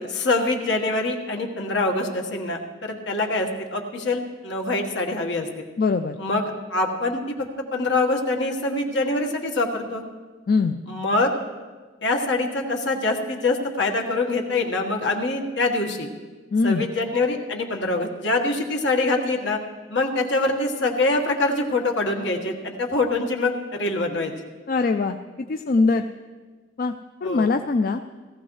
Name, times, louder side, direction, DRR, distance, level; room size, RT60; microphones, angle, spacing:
voice 1, 0.0-5.5 6.2-6.4 6.7-10.0 10.9-11.3 12.0-16.1 16.6-19.6 19.9-24.3 27.2-27.5, left 2 dB, 65° left, 2 dB, 1.5 m, -24 dB
voice 2, 5.8-6.2 10.5-10.8 16.5-16.8 24.7-26.1 26.8-26.9 27.2-28.0, left 4 dB, 45° left, 7 dB, 0.4 m, -22 dB
17.5 x 14.5 x 3.2 m, 1.4 s
head